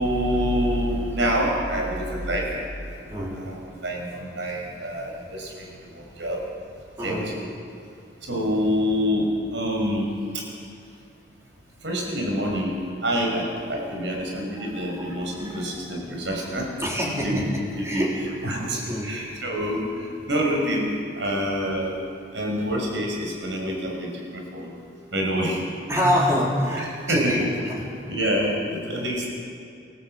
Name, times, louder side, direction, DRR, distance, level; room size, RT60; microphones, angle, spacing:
voice 1, 0.0-2.5 2.8-5.7 5.9-6.4 7.0-7.5 8.3-10.1 11.8-12.7 13.0-16.7 17.2-17.5 17.8-18.1 18.4-22.0 22.3-24.7 25.1-25.6 27.1-27.4 28.1-29.3, equal, 75° right, 0 dB, 5.9 m, -26 dB
voice 2, 7.0-7.3 14.3-16.2 16.8-18.1 18.4-18.6 18.9-19.4 20.5-20.6 25.9-27.9, equal, 15° right, -4 dB, 4.0 m, -28 dB
28.0 x 15.5 x 7.9 m, 2.5 s
head